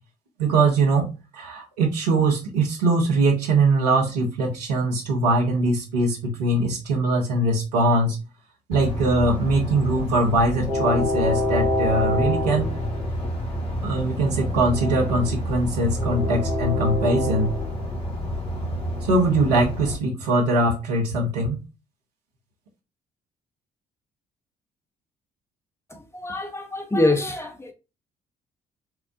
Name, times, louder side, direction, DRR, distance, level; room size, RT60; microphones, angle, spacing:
voice 1, 0.4-8.2 8.7-12.7 13.8-17.5 19.0-21.6, right 2 dB, 85° right, 1.1 m, -22 dB
Train, 8.7-19.9, left 1 dB, 30° left, 2.2 m, -27 dB
voice 2, 25.9-27.7, left 2 dB, 15° left, 1.2 m, -25 dB
5.8 x 2.3 x 2.7 m
figure-of-eight pair, 45°, 20 cm